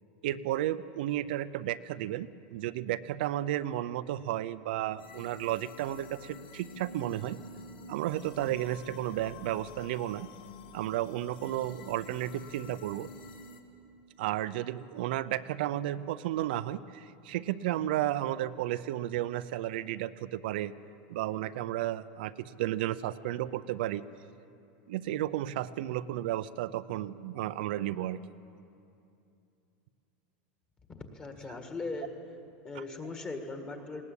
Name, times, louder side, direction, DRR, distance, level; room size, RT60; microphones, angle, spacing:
voice 1, 0.2-7.4 7.9-10.3 10.7-13.1 14.2-20.7 21.1-24.0 24.9-28.2 32.7-32.8, right 13 dB, 70° right, 13 dB, 0.6 m, -33 dB
sound 1, 5.0-13.6, left 3 dB, 75° left, 1.9 m, -49 dB
voice 2, 30.9-32.1 32.6-34.0, left 3 dB, 20° left, 5 dB, 1.7 m, -39 dB
19.5 x 18.0 x 8.4 m, 2.7 s
supercardioid pair, 160°, 5 cm